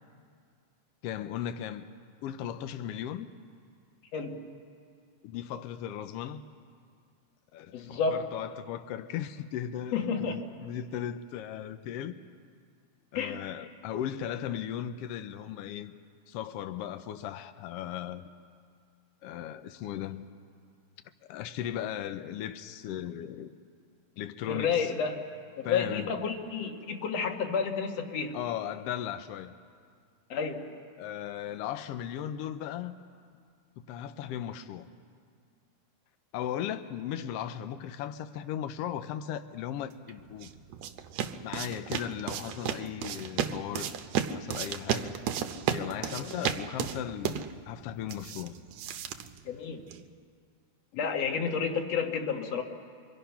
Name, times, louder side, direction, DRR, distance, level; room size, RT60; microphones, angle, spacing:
voice 1, 1.0-1.9 2.2-3.3 5.2-6.4 7.5-12.2 13.1-15.9 16.3-18.2 19.2-20.2 21.3-23.6 24.2-24.9 25.6-26.1 28.3-29.5 31.0-33.0 33.8-34.9 36.3-40.5 41.4-43.9 44.3-45.2 45.7-48.5, left 10 dB, 85° left, 1.3 m, -37 dB
voice 2, 4.1-4.4 7.7-8.3 9.9-10.5 13.1-13.4 24.5-25.3 25.6-28.4 30.3-30.7 46.2-46.4 49.5-49.8 50.9-52.6, left 6 dB, 60° left, 2.4 m, -31 dB
sound 1, 40.1-50.1, right 9 dB, 70° right, 1.8 m, -34 dB
25.5 x 24.0 x 5.8 m
omnidirectional pair, 3.6 m